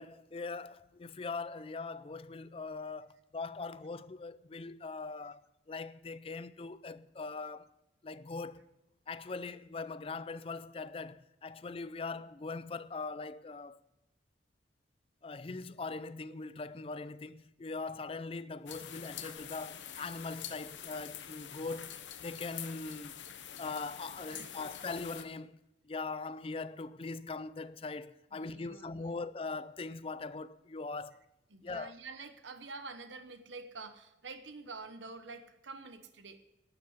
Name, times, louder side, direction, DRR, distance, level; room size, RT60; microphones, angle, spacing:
voice 1, 0.0-7.7 8.0-8.7 9.1-13.8 15.2-21.9 22.2-23.2 23.6-25.6 25.8-31.2 31.6-31.9, left 3 dB, 30° left, 0.4 m, -41 dB
sound 1, 18.7-25.2, left 9 dB, 85° left, 0.9 m, -46 dB
voice 2, 24.2-24.9 28.3-29.2 31.5-36.4, right 3 dB, 90° right, 1.1 m, -48 dB
12.0 x 6.7 x 9.6 m
head